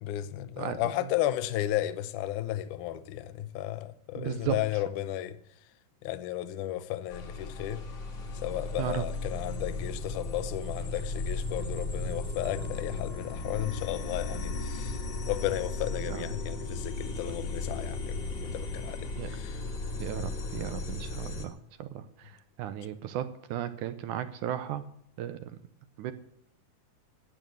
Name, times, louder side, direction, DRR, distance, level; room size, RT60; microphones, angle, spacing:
voice 1, 0.0-5.4 6.0-7.8 8.4-15.0 15.3-19.6, left 13 dB, 75° left, 2.1 m, -34 dB
voice 2, 0.6-1.1 4.1-4.8 8.8-9.0 16.0-16.3 19.2-19.3 20.0-24.9 25.2-25.6 26.0-26.1, right 11 dB, 75° right, 2.0 m, -36 dB
sound 1, 7.1-21.5, left 3 dB, 45° left, 1.7 m, -35 dB
12.5 x 8.9 x 7.8 m
omnidirectional pair, 3.9 m